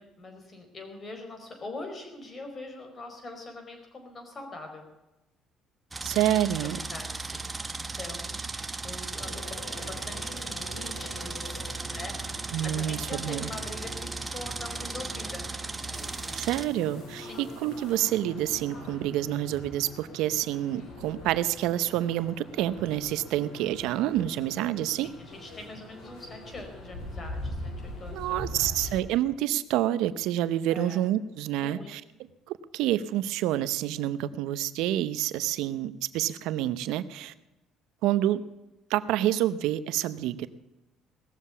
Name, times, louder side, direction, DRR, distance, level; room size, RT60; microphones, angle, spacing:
voice 1, 0.0-4.9 6.0-6.2 6.6-7.5 7.8-15.5 17.2-17.5 25.0-29.0 30.7-31.0 31.6-31.9, left 2 dB, 35° left, 5 dB, 4.5 m, -43 dB
sound 1, 5.9-16.6, right 3 dB, 20° right, 1.3 m, -36 dB
voice 2, 6.0-6.8 12.5-13.5 16.3-25.1 28.1-32.0 32.5-37.3 38.0-38.4 38.9-40.5, right 13 dB, 80° right, 15 dB, 0.7 m, -28 dB
sound 2, 9.2-29.0, left 1 dB, 65° left, 5.9 m, -43 dB
18.5 x 7.4 x 8.2 m, 1.0 s
supercardioid pair, 75°, 0 cm